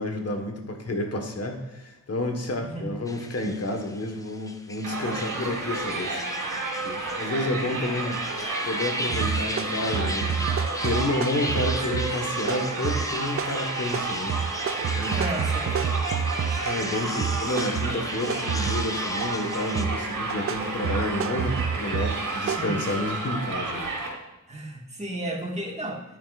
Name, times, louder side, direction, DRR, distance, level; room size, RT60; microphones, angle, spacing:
voice 1, 0.0-6.2 6.8-8.2 8.6-10.5 10.8-14.4 14.9-15.2 16.6-23.9, left 1 dB, 50° left, 3 dB, 1.4 m, -30 dB
voice 2, 2.6-3.0 15.1-15.9 22.6-22.8 24.5-26.0, right 1 dB, 20° right, 0 dB, 1.8 m, -33 dB
sound 1, 3.1-19.9, left 1 dB, 10° left, 0.7 m, -37 dB
Crowd, 4.8-24.1, right 3 dB, 75° right, 2.8 m, -31 dB
sound 2, 9.1-16.9 17.2-19.4 19.7-22.6, right 7 dB, 45° right, 0.4 m, -29 dB
10.0 x 8.9 x 2.5 m, 1.0 s
wide cardioid pair, 105°, 32 cm